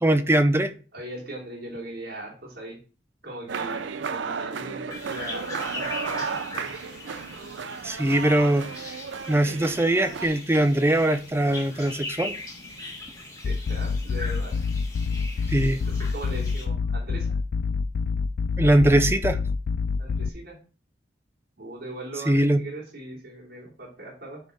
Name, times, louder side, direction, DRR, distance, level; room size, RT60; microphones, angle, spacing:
voice 1, 0.0-0.7 7.8-9.0 9.3-12.3 15.5-15.8 18.6-19.4 22.3-22.6, right 1 dB, 15° right, 0.5 m, -21 dB
voice 2, 0.9-2.8 3.2-6.7 13.4-14.6 15.7-17.4 20.0-20.6 21.6-24.4, right 1 dB, 55° right, 3.0 m, -39 dB
sound 1, 3.5-10.3, right 5 dB, 75° right, 0.5 m, -34 dB
sound 2, 4.9-16.6, left 2 dB, 15° left, 1.7 m, -40 dB
sound 3, 13.4-20.3, left 5 dB, 55° left, 0.3 m, -27 dB
9.7 x 3.5 x 4.0 m
head